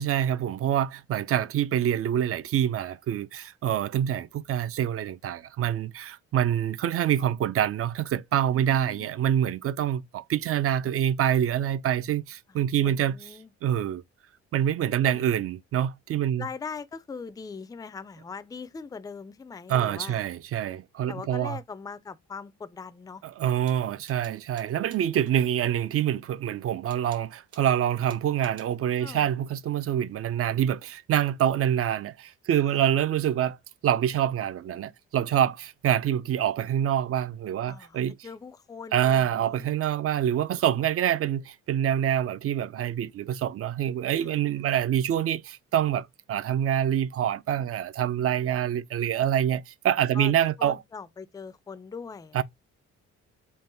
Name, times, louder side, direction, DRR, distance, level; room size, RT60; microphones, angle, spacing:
voice 1, 0.0-13.2 13.6-14.0 14.5-16.5 19.7-21.6 23.4-33.6 33.8-38.2 38.9-50.8 52.3-52.4, right 10 dB, 50° right, 0.4 m, -26 dB
voice 2, 8.5-9.1 12.8-13.5 15.0-15.2 16.4-20.2 21.1-23.2 29.0-29.3 32.6-32.8 37.7-39.7 44.2-44.8 50.1-50.3 50.6-52.4, left 5 dB, 10° left, 0.4 m, -41 dB
sound 1, 23.6-25.4 26.9-27.7 28.1-28.8, right 7 dB, 70° right, 1.4 m, -54 dB
3.8 x 2.2 x 3.9 m
cardioid pair, 90°, 30 cm